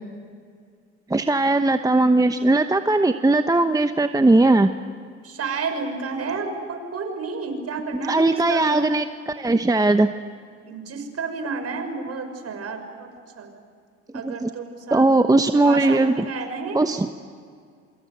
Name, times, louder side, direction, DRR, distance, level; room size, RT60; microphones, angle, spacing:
voice 1, 1.1-4.7 8.1-10.1 14.2-14.5 14.9-16.1 16.7-17.1, right 2 dB, 10° right, 9 dB, 1.0 m, -19 dB
voice 2, 5.2-8.9 10.7-13.1 13.4-13.6 14.1-16.8, right 4 dB, 45° right, 6 dB, 5.9 m, -31 dB
27.5 x 25.5 x 8.0 m, 2.1 s
hypercardioid pair, 70°, 33 cm